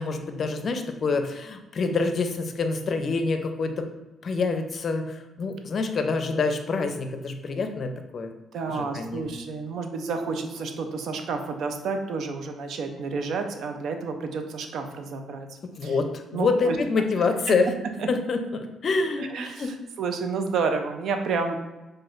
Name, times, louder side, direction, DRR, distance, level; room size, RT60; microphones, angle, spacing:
voice 1, 0.0-3.9 4.2-8.3 8.7-9.3 15.8-17.7 18.1-19.7, left 4 dB, 50° left, 6 dB, 0.5 m, -26 dB
voice 2, 8.5-15.5 15.8-16.0 16.3-16.8 17.5-17.6 18.0-18.1 19.2-21.6, right 4 dB, 70° right, 6 dB, 0.5 m, -30 dB
6.0 x 2.6 x 2.5 m, 1.1 s
cardioid pair, 90°, 0 cm